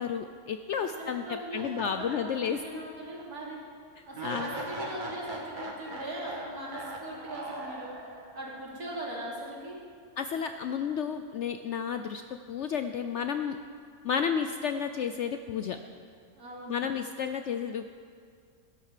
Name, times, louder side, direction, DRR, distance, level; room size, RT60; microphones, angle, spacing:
voice 1, 0.0-2.6 4.2-4.5 10.2-13.6 14.0-15.8 16.7-17.9, left 7 dB, 70° left, 8 dB, 0.7 m, -32 dB
voice 2, 0.8-3.6 4.1-9.8 16.4-16.8, right 1 dB, 70° right, -5 dB, 3.7 m, -40 dB
sound 1, 1.5-2.8 3.2-3.3 4.1-8.4, right 1 dB, 30° right, 1.6 m, -40 dB
18.5 x 11.0 x 4.9 m, 2.2 s
omnidirectional pair, 1.6 m